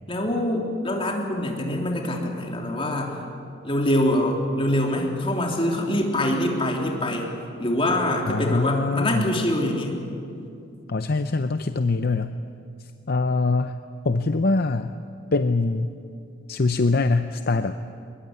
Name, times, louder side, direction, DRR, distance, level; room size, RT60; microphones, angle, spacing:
voice 1, 0.1-3.1 3.6-7.3 7.6-10.0, left 1 dB, 25° left, 0 dB, 3.4 m, -24 dB
voice 2, 8.3-9.4 10.9-12.4 12.8-13.8 14.0-15.0 15.3-15.9 16.5-17.8, left 3 dB, 50° left, 9 dB, 0.6 m, -23 dB
22.5 x 21.5 x 9.7 m, 2.6 s
head